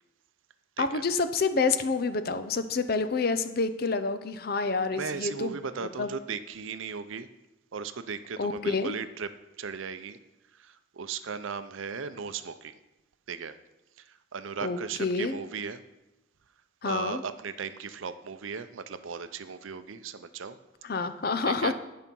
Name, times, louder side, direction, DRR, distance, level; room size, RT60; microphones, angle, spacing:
voice 1, 0.8-5.6 6.0-6.1 8.4-9.0 14.6-15.4 16.8-17.2 20.8-21.7, left 4 dB, 45° left, 11 dB, 0.6 m, -28 dB
voice 2, 4.9-7.3 7.7-9.3 9.6-10.2 10.5-12.8 13.3-13.6 14.0-15.8 16.8-20.6 21.4-21.7, right 6 dB, 75° right, 12 dB, 0.6 m, -37 dB
10.5 x 5.6 x 5.4 m, 1.0 s
head